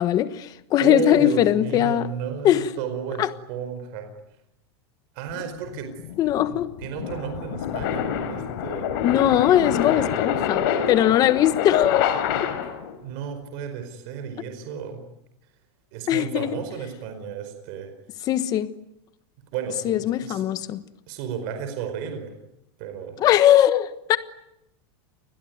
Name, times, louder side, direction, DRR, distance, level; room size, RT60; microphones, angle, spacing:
voice 1, 0.0-2.1 2.4-2.7 3.2-3.3 6.2-6.7 9.0-12.1 16.1-16.6 18.2-18.7 19.8-20.8 23.2-24.2, left 12 dB, 25° left, 1.3 m, -20 dB
voice 2, 0.8-4.1 5.1-5.9 6.4-8.9 9.9-10.1 13.0-15.0 15.9-17.9 19.5-20.4 21.1-22.3 22.8-23.2, right 7 dB, 45° right, 4.9 m, -33 dB
sound 1, 5.3-12.9, left 8 dB, 55° left, 3.9 m, -27 dB
29.5 x 21.5 x 9.5 m
supercardioid pair, 170°, 14 cm